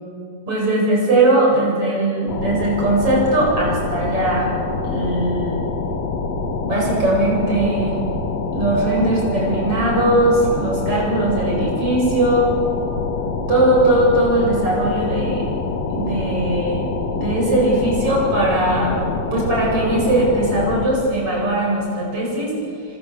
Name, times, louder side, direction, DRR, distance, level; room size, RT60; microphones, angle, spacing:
voice 1, 0.5-4.5 4.8-5.6 6.6-8.0 8.5-12.5 13.5-15.5 15.9-16.8 17.1-22.6, right 1 dB, 40° right, -3 dB, 9.0 m, -19 dB
sound 1, 2.3-20.9, left 4 dB, 55° left, 2.8 m, -25 dB
28.5 x 25.0 x 8.2 m, 2.7 s
omnidirectional pair, 3.8 m